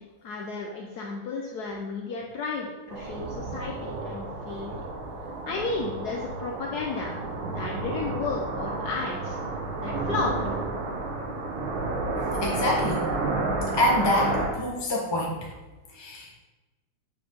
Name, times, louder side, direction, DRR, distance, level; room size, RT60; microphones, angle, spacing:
voice 1, 0.0-4.8 5.2-7.1 7.5-9.4 9.8-10.6, left 4 dB, 65° left, 0 dB, 1.0 m, -33 dB
sound 1, 2.9-14.5, right 3 dB, 70° right, 1.8 m, -31 dB
voice 2, 12.2-13.0 13.7-15.5 15.9-16.3, left 1 dB, 20° left, -3 dB, 0.7 m, -26 dB
8.9 x 5.4 x 3.8 m, 1.2 s
omnidirectional pair, 2.4 m